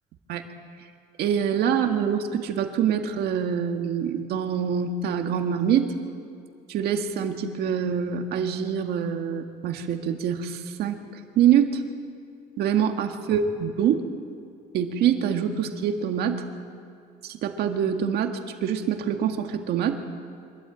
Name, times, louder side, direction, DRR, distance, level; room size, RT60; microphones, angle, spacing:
voice 1, 1.2-5.9 6.7-11.0 11.4-11.8 12.6-14.1 14.7-16.4 17.2-20.0, right 8 dB, 75° right, 5 dB, 1.9 m, -25 dB
24.5 x 13.0 x 9.0 m, 2.4 s
cardioid pair, 110°, 17 cm